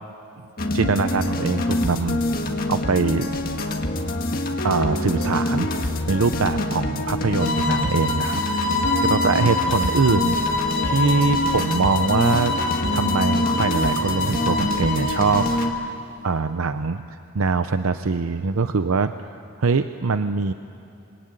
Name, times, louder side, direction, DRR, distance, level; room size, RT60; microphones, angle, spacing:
sound 1, 0.6-15.7, left 1 dB, 45° left, 1.7 m, -25 dB
voice 1, 0.7-3.4 4.6-10.4 10.8-12.6 12.9-15.9 16.2-19.1 19.6-20.5, right 4 dB, 90° right, 10 dB, 0.7 m, -23 dB
sound 2, 7.4-15.8, left 3 dB, 85° left, 3.2 m, -26 dB
25.5 x 23.0 x 9.0 m, 2.6 s
head